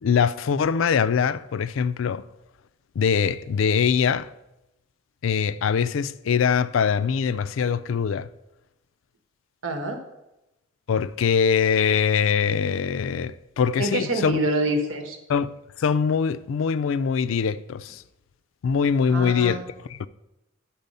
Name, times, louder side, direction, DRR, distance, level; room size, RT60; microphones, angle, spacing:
voice 1, 0.0-2.2 3.0-4.3 5.2-8.3 10.9-14.4 15.3-15.5 15.8-18.0 18.6-20.1, left 6 dB, 80° left, 0.4 m, -23 dB
voice 2, 9.6-10.0 13.8-15.2 19.1-19.6, right 1 dB, 85° right, 1.3 m, -26 dB
10.5 x 4.4 x 5.4 m
head